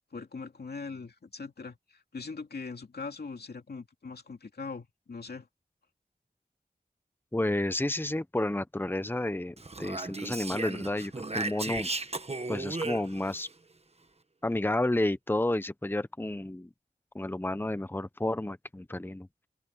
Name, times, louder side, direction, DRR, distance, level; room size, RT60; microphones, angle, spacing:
voice 1, 0.1-5.5, left 4 dB, 85° left, 2.6 m, -41 dB
voice 2, 7.3-11.9 12.5-13.5 14.4-16.7 17.1-19.3, left 1 dB, 15° left, 0.9 m, -31 dB
Speech, 9.6-13.5, right 3 dB, 40° right, 1.3 m, -35 dB
open air
wide cardioid pair, 55°, 16 cm